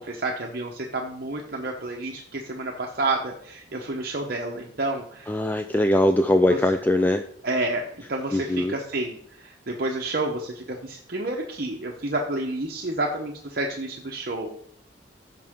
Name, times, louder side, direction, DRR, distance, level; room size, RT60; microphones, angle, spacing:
voice 1, 0.0-5.3 6.5-6.7 7.4-14.5, right 2 dB, 50° right, 1 dB, 0.9 m, -30 dB
voice 2, 5.3-7.2 8.3-8.7, left 1 dB, 10° left, 8 dB, 0.3 m, -21 dB
15.0 x 5.7 x 3.7 m, 0.66 s
head